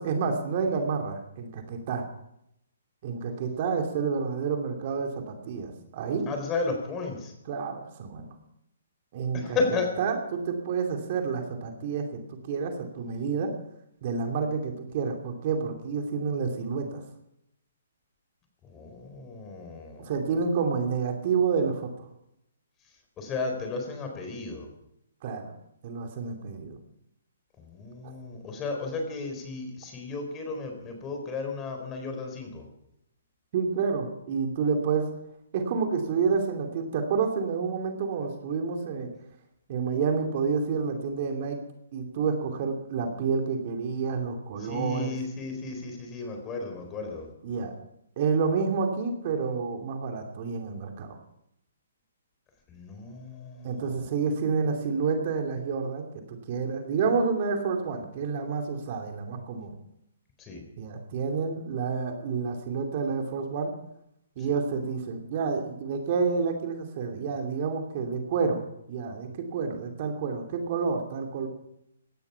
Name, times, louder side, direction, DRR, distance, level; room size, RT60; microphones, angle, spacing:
voice 1, 0.0-2.1 3.0-6.3 7.5-8.3 9.1-9.6 10.0-13.5 14.0-17.0 20.0-22.1 25.2-25.5 25.8-26.8 28.0-28.1 33.5-35.1 35.5-39.1 39.7-41.6 41.9-45.1 47.4-47.7 48.2-51.2 53.6-59.8 60.8-63.7 64.4-68.6 68.9-71.5, right 5 dB, 45° right, 3 dB, 2.7 m, -29 dB
voice 2, 6.3-7.3 9.3-9.9 18.6-20.1 23.2-24.7 27.6-32.7 44.6-47.3 52.7-54.1 60.4-60.6, left 3 dB, 20° left, 4 dB, 4.3 m, -34 dB
17.0 x 12.5 x 5.8 m, 0.78 s
hypercardioid pair, 140°, 0 cm